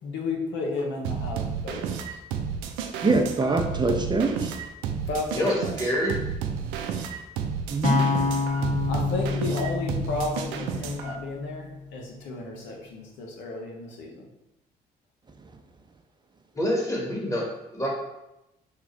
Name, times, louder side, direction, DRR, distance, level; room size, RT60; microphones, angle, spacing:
voice 1, 0.0-2.2 5.1-5.8 8.9-14.3, left 3 dB, 75° left, 0 dB, 0.9 m, -33 dB
sound 1, 1.0-11.2, right 7 dB, 80° right, 0.4 m, -32 dB
voice 2, 3.0-4.5 7.7-8.2, right 3 dB, 25° right, 3 dB, 0.7 m, -24 dB
voice 3, 5.3-6.2 16.5-17.4 17.7-17.9, equal, 15° left, -3 dB, 1.5 m, -26 dB
sound 2, 7.8-12.0, left 3 dB, 40° left, 0.9 m, -28 dB
5.6 x 2.4 x 3.2 m, 0.92 s
hypercardioid pair, 50°, 19 cm